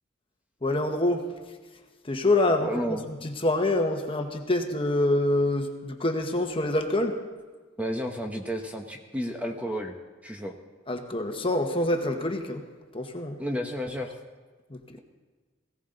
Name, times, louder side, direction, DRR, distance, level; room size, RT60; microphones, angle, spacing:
voice 1, 0.6-1.3 2.0-7.2 10.9-12.6 12.9-13.4 14.7-14.8, left 1 dB, 30° left, 4 dB, 1.2 m, -26 dB
voice 2, 2.6-3.1 7.8-9.9 10.2-10.5 13.4-14.2, equal, 5° right, 3 dB, 0.9 m, -32 dB
18.5 x 16.5 x 3.9 m, 1.4 s
head